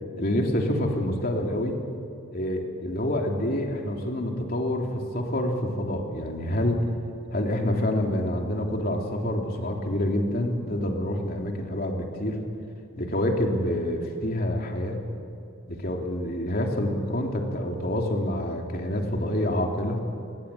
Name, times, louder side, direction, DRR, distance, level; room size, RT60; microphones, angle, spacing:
voice 1, 0.2-1.8 2.3-4.9 5.1-6.8 7.3-12.4 13.0-15.0 15.7-20.0, left 1 dB, 45° left, 1 dB, 3.4 m, -27 dB
26.5 x 21.5 x 8.6 m, 2.5 s
head